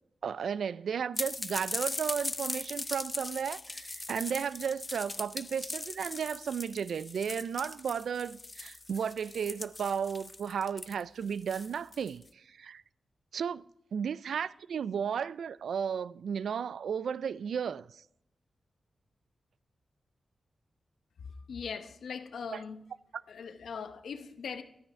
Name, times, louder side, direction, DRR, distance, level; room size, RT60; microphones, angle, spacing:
voice 1, 0.2-12.8 13.3-13.6 13.9-18.0 22.5-22.6, right 7 dB, 90° right, 0.3 m, -34 dB
sound 1, 1.2-12.2, left 2 dB, 25° left, 0.5 m, -39 dB
voice 2, 21.3-22.8 23.3-24.6, left 6 dB, 90° left, 0.8 m, -40 dB
13.0 x 8.9 x 4.8 m
wide cardioid pair, 125°, 0 cm